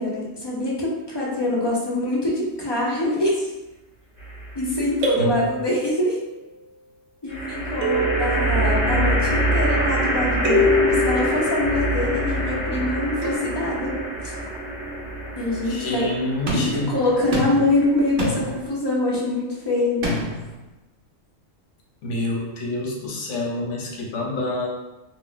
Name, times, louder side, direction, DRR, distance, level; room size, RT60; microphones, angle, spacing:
voice 1, 0.0-3.5 4.5-6.2 7.2-13.9 14.2-14.3 15.4-16.1 16.5-20.1, left 1 dB, 40° left, -5 dB, 0.3 m, -24 dB
sound 1, 4.2-4.8 7.3-18.7, right 1 dB, 35° right, 0.9 m, -26 dB
sound 2, 5.0-6.5 7.8-9.8 10.4-12.6 13.2-14.6, left 1 dB, 75° right, 0.9 m, -27 dB
voice 2, 15.7-16.9 22.0-24.7, left 2 dB, 70° left, -1 dB, 1.0 m, -27 dB
sound 3, 16.5-16.8 17.3-17.7 18.2-18.5 20.0-20.5, equal, 55° right, 0.6 m, -25 dB
2.4 x 2.0 x 3.7 m, 1.0 s
omnidirectional pair, 1.3 m